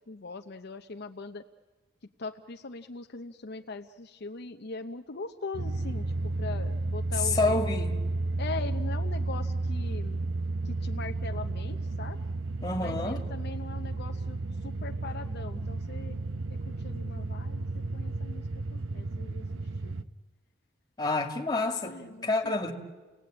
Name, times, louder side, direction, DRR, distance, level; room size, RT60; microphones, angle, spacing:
voice 1, 0.1-1.4 2.2-6.0 6.4-7.6 8.4-10.2 10.7-12.2 12.8-14.4 14.6-16.2 16.8-17.6 17.9-18.4 18.7-19.4 19.8-20.0 21.8-22.7, left 3 dB, 55° left, 0.8 m, -40 dB
sound 1, 5.5-20.0, right 2 dB, 85° right, 0.8 m, -32 dB
voice 2, 7.2-8.0 12.6-13.2 15.6-15.7 21.0-22.7, left 3 dB, 20° left, 2.1 m, -28 dB
30.0 x 19.0 x 8.8 m
head